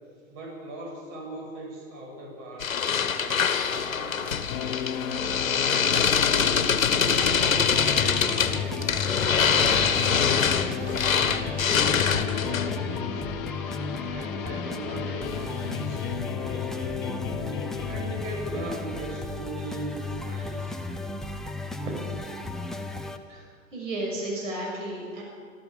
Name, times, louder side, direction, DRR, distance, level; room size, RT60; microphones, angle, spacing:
voice 1, 0.3-4.4 5.6-8.8 9.2-11.6 12.0-13.3 14.1-17.3 17.9-20.8, right 1 dB, 35° right, -1 dB, 7.4 m, -39 dB
sound 1, 2.6-12.8, left 7 dB, 75° left, 1.5 m, -24 dB
sound 2, 4.5-18.9, left 8 dB, 40° left, 1.5 m, -34 dB
sound 3, 7.2-23.2, left 2 dB, ahead, 0.4 m, -34 dB
voice 2, 23.3-25.2, right 1 dB, 65° right, -2 dB, 6.2 m, -33 dB
26.0 x 14.0 x 7.2 m, 2.1 s
figure-of-eight pair, 115°, 41 cm